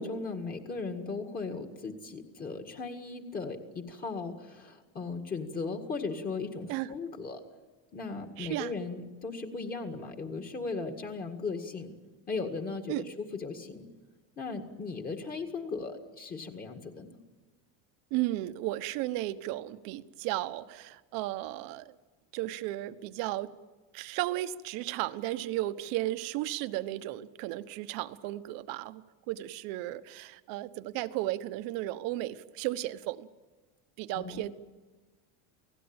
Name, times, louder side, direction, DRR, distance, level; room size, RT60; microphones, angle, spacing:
voice 1, 0.0-7.4 7.9-11.9 12.3-13.9 14.4-17.2 34.1-34.5, left 4 dB, 25° left, 5 dB, 2.0 m, -37 dB
voice 2, 8.4-8.7 12.9-13.1 18.1-22.0 22.3-23.5 23.9-33.3 34.0-34.5, right 16 dB, 65° right, 12 dB, 1.2 m, -34 dB
29.0 x 17.5 x 8.9 m, 1.3 s
cardioid pair, 165°, 37 cm